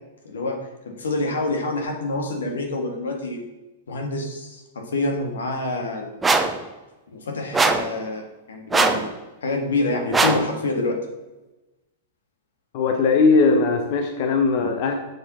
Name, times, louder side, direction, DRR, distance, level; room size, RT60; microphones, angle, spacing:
voice 1, 0.2-0.6 0.9-3.4 3.9-6.1 7.1-9.1 9.4-11.0, left 2 dB, 90° left, 2 dB, 1.7 m, -27 dB
sound 1, 6.2-6.6 7.5-7.9 8.7-9.1 10.1-10.5, right 3 dB, 10° right, 0.6 m, -20 dB
voice 2, 12.7-14.9, left 4 dB, 55° left, 4 dB, 0.9 m, -19 dB
6.6 x 4.5 x 6.0 m, 1.1 s
hypercardioid pair, 125°, 0 cm